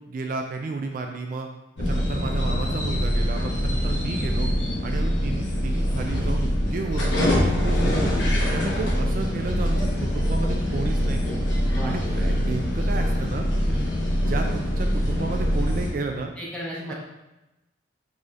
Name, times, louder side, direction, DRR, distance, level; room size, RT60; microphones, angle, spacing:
voice 1, 0.0-1.5 1.8-4.5 4.8-8.1 8.5-11.4 11.8-13.5 14.1-16.3 16.9-17.0, right 3 dB, 50° right, 3 dB, 0.3 m, -32 dB
sound 1, 1.8-15.9, equal, 90° left, 1.0 m, -24 dB
voice 2, 11.6-12.0 13.6-13.9 16.4-16.9, equal, 5° left, -5 dB, 0.9 m, -34 dB
4.8 x 4.0 x 2.4 m, 0.99 s
head